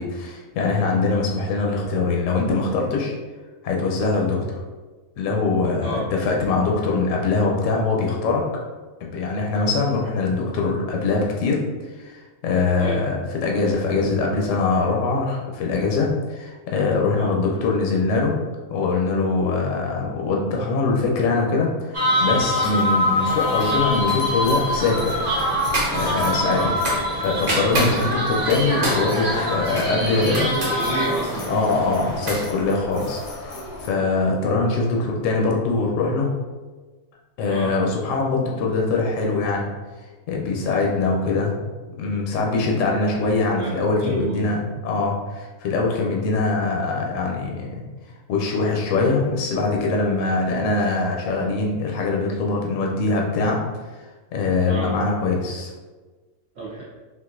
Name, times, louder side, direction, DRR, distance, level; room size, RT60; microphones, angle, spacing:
voice 1, 0.0-3.1 3.6-4.4 5.2-8.4 9.0-11.6 12.0-18.4 18.7-25.2 25.9-26.7 27.2-30.5 31.5-33.2 33.5-36.3 37.4-39.7 40.3-41.6 42.0-47.8 48.3-53.6 54.3-55.7, left 3 dB, 70° left, 0 dB, 0.8 m, -22 dB
sound 1, 21.9-32.5, equal, 45° right, 0.6 m, -24 dB
sound 2, 23.3-33.9, left 2 dB, 85° left, 1.1 m, -36 dB
voice 2, 30.2-31.7 37.5-37.7 43.5-43.7 44.0-44.4 54.6-54.9 56.6-56.8, right 2 dB, 65° right, -7 dB, 1.0 m, -29 dB
3.7 x 2.4 x 2.4 m, 1.3 s
omnidirectional pair, 1.5 m